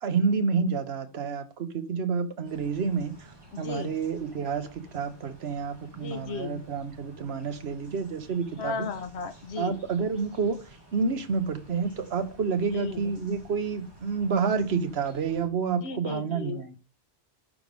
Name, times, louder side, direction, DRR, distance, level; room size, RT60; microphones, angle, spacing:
voice 1, 0.0-3.1 3.6-8.9 9.6-10.6 10.9-16.7, right 5 dB, 75° right, 1.2 m, -29 dB
sound 1, 2.4-15.5, right 1 dB, 25° right, 2.6 m, -53 dB
voice 2, 3.5-4.0 5.9-6.6 8.6-9.7 12.6-13.1 15.8-16.8, left 5 dB, 85° left, 1.2 m, -35 dB
11.0 x 5.3 x 3.4 m
omnidirectional pair, 1.1 m